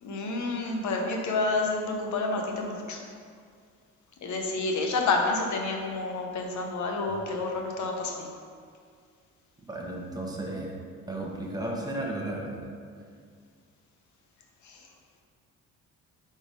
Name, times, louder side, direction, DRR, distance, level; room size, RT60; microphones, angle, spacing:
voice 1, 0.0-3.0 4.2-8.3 14.6-14.9, left 3 dB, 70° left, 2 dB, 1.0 m, -29 dB
voice 2, 9.7-10.7 11.1-12.7, right 1 dB, 15° right, -2 dB, 1.2 m, -34 dB
5.0 x 4.4 x 5.1 m, 2.1 s
cardioid pair, 90°, 30 cm